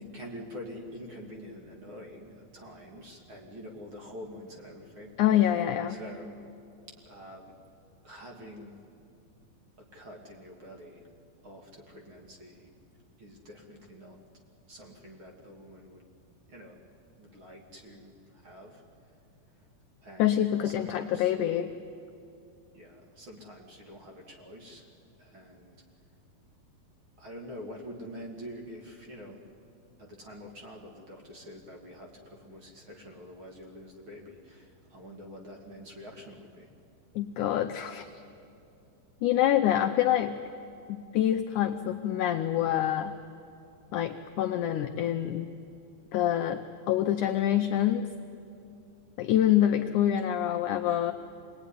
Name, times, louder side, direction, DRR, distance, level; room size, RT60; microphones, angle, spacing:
voice 1, 0.1-5.6 5.9-6.3 6.9-7.5 8.0-8.8 9.9-11.1 11.4-12.7 13.2-14.2 14.7-16.0 16.5-16.8 17.2-18.8 20.0-21.3 21.6-21.7 22.7-24.9 25.2-25.8 27.2-29.5 30.0-36.7, equal, 35° right, 0 dB, 2.8 m, -46 dB
voice 2, 5.2-6.0 20.2-21.7 37.2-38.1 39.2-40.4 40.9-43.1 43.9-45.5 46.1-48.1 49.2-51.1, left 11 dB, 85° left, 6 dB, 1.7 m, -26 dB
26.5 x 20.5 x 10.0 m, 2.7 s
omnidirectional pair, 4.5 m